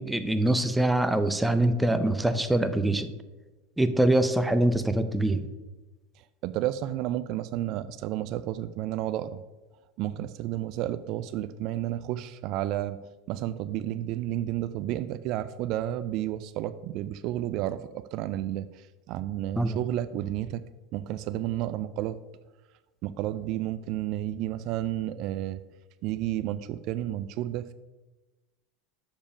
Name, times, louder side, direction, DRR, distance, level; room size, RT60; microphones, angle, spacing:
voice 1, 0.0-3.1 3.8-5.4 19.6-19.8, right 1 dB, 5° right, 10 dB, 0.6 m, -24 dB
voice 2, 6.2-9.4 10.0-13.0 13.3-20.6 20.9-22.2 23.0-25.6 26.0-27.7, right 13 dB, 55° right, 13 dB, 0.3 m, -31 dB
7.1 x 5.1 x 5.0 m, 1.1 s
hypercardioid pair, 95°, 0 cm